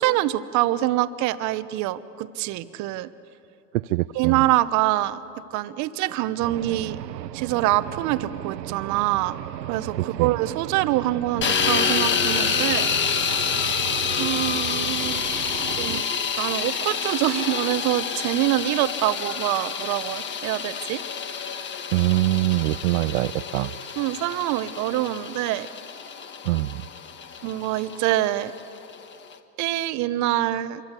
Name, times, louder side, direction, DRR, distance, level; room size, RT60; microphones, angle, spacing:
voice 1, 0.0-3.1 4.1-5.2 5.5-7.0 7.3-9.4 9.7-12.9 14.2-15.2 15.7-16.0 16.4-21.0 24.0-25.7 27.4-28.5 29.6-30.8, right 15 dB, 35° right, 14 dB, 1.0 m, -25 dB
voice 2, 3.7-4.4 10.2-10.3 21.9-23.7 26.4-26.8, right 19 dB, 55° right, 14 dB, 0.5 m, -23 dB
sound 1, 6.4-16.0, right 13 dB, 85° right, 0.9 m, -35 dB
sound 2, 11.4-29.3, left 6 dB, 25° left, 1.5 m, -28 dB
26.0 x 24.0 x 8.3 m, 2.7 s
hypercardioid pair, 125°, 48 cm